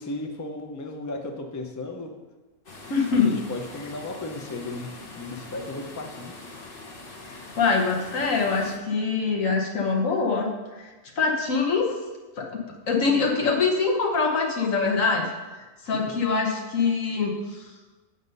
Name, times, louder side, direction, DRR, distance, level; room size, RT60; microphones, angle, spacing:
voice 1, 0.0-2.1 3.1-4.9 5.2-6.3 15.9-16.2, left 2 dB, 25° left, 3 dB, 0.4 m, -35 dB
sound 1, 2.7-8.8, left 2 dB, 40° left, 1.2 m, -43 dB
voice 2, 2.9-3.4 7.3-10.5 10.8-10.9 11.2-12.0 12.4-15.3 15.8-17.7, left 4 dB, 60° left, 0 dB, 1.4 m, -24 dB
8.0 x 5.7 x 5.4 m, 1.2 s
omnidirectional pair, 1.6 m